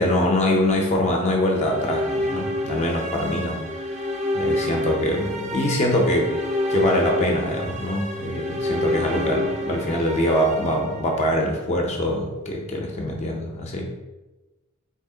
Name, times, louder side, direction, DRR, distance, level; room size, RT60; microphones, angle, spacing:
voice 1, 0.0-3.6 4.3-6.3 6.7-13.9, left 1 dB, 30° left, 1 dB, 0.5 m, -23 dB
sound 1, 1.4-11.6, left 1 dB, 30° right, 0.4 m, -28 dB
2.7 x 2.7 x 3.7 m, 1.1 s
head